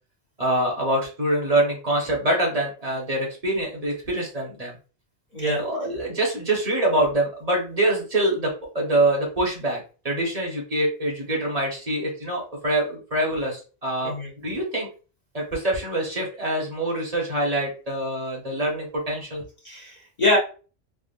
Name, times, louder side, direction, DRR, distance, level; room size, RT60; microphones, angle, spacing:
voice 1, 0.4-4.7 5.4-14.1 14.4-14.9 15.3-19.4, right 1 dB, 35° right, -2 dB, 1.1 m, -25 dB
voice 2, 19.6-20.4, left 1 dB, 40° left, -5 dB, 1.0 m, -24 dB
3.5 x 2.4 x 2.5 m, 0.35 s
omnidirectional pair, 1.2 m